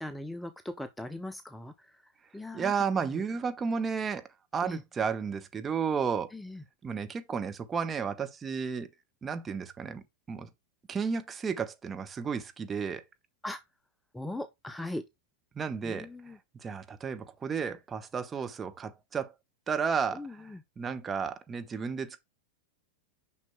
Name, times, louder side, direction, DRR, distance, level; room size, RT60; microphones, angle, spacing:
voice 1, 0.0-3.2 4.6-4.8 6.3-6.6 13.4-13.6 14.1-15.0 15.8-16.4 20.1-20.6, left 1 dB, 5° left, 0.5 m, -40 dB
voice 2, 2.5-6.3 6.8-8.9 9.2-10.5 10.9-13.0 15.5-19.3 19.7-22.2, right 6 dB, 20° right, 1.0 m, -33 dB
9.1 x 5.9 x 2.2 m
figure-of-eight pair, 90°, 0 cm